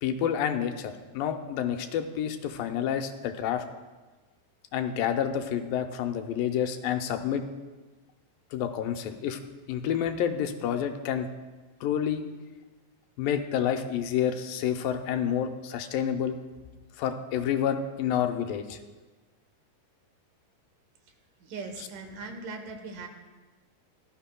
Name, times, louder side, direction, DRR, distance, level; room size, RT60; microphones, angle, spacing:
voice 1, 0.0-3.6 4.7-7.4 8.5-9.4 9.7-11.3 11.8-12.2 13.2-16.4 17.0-18.8, left 9 dB, 90° left, 6 dB, 2.4 m, -29 dB
voice 2, 21.4-23.1, right 3 dB, 75° right, 4 dB, 2.7 m, -39 dB
17.0 x 12.5 x 2.3 m, 1.3 s
omnidirectional pair, 3.9 m